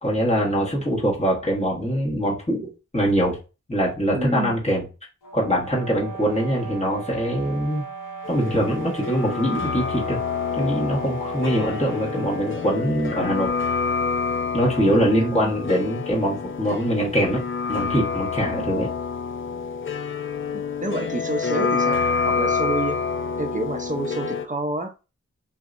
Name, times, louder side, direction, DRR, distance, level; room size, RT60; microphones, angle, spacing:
voice 1, 0.0-3.4 3.7-4.9 5.3-7.8 8.3-10.2 10.5-13.5 14.5-17.4 17.7-18.9, equal, 20° left, 1.3 m, -23 dB
voice 2, 4.1-4.6 14.8-15.5 18.4-18.7 20.5-23.0 23.4-24.9, right 1 dB, 25° right, 0.6 m, -29 dB
sound 1, 5.2-12.7, right 5 dB, 80° left, 0.8 m, -37 dB
sound 2, 8.2-24.5, left 5 dB, 40° left, 0.4 m, -27 dB
3.1 x 2.7 x 2.5 m
wide cardioid pair, 70°, 31 cm